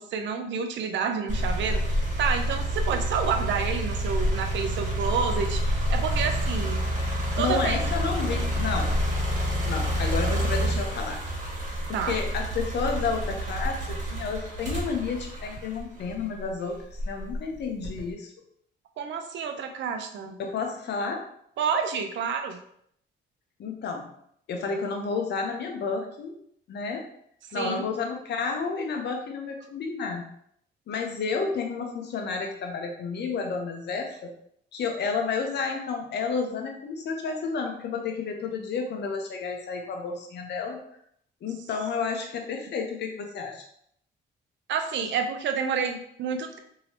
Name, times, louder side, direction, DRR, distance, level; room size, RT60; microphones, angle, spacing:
voice 1, 0.0-6.8 7.4-7.9 11.9-12.2 19.0-20.4 21.6-22.6 27.4-27.8 44.7-46.6, right 6 dB, 65° right, 5 dB, 0.5 m, -29 dB
sound 1, 1.3-16.3 16.9-18.1, equal, 40° right, 1.3 m, -28 dB
voice 2, 7.4-9.0 9.7-11.2 11.9-18.3 20.4-21.2 23.6-24.1 24.5-26.4 26.7-27.0 27.5-30.3 30.9-34.3 34.7-40.8 41.4-43.6, left 5 dB, 60° left, 3 dB, 0.7 m, -31 dB
3.0 x 2.8 x 2.9 m, 0.69 s
cardioid pair, 90°, 20 cm